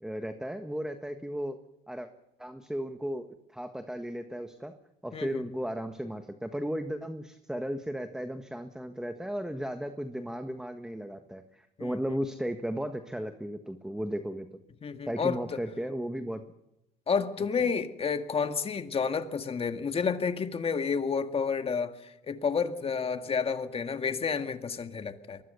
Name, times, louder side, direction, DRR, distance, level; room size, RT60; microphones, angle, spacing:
voice 1, 0.0-1.6 1.9-2.1 2.4-4.7 5.0-14.6 15.1-16.4 17.6-17.7, equal, 5° right, 7 dB, 1.4 m, -35 dB
voice 2, 5.1-5.4 11.8-11.9 14.8-15.6 17.1-25.4, left 5 dB, 35° left, 7 dB, 2.0 m, -30 dB
23.5 x 21.5 x 6.9 m, 0.89 s
cardioid pair, 110°, 17 cm